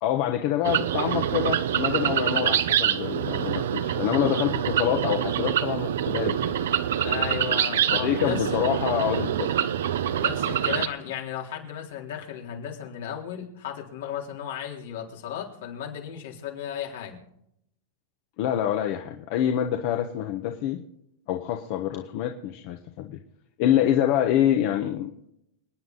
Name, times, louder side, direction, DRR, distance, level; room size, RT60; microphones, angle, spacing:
voice 1, 0.0-6.5 7.9-9.5 18.4-20.8 21.3-23.2 23.6-25.1, left 11 dB, 50° left, 5 dB, 1.2 m, -26 dB
sound 1, 0.6-10.9, right 10 dB, 85° right, 0.9 m, -25 dB
voice 2, 7.0-8.6 10.2-17.2, left 9 dB, 75° left, 0 dB, 3.9 m, -35 dB
28.0 x 9.5 x 4.1 m, 0.78 s
supercardioid pair, 150°, 0 cm